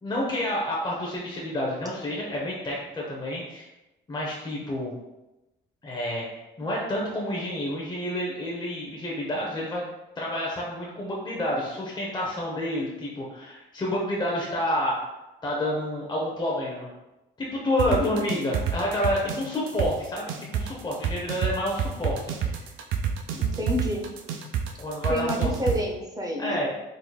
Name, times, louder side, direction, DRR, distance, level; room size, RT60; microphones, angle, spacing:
voice 1, 0.0-3.7 4.1-4.9 5.8-9.8 10.2-15.0 15.4-16.9 17.4-22.6 24.8-25.8 26.4-26.7, left 1 dB, 20° left, -4 dB, 0.8 m, -29 dB
sound 1, 17.8-25.8, right 9 dB, 85° right, 0.4 m, -27 dB
voice 2, 23.3-24.0 25.1-26.6, left 1 dB, 20° right, 1 dB, 0.7 m, -29 dB
3.9 x 2.9 x 2.3 m, 0.98 s
cardioid pair, 90°, 20 cm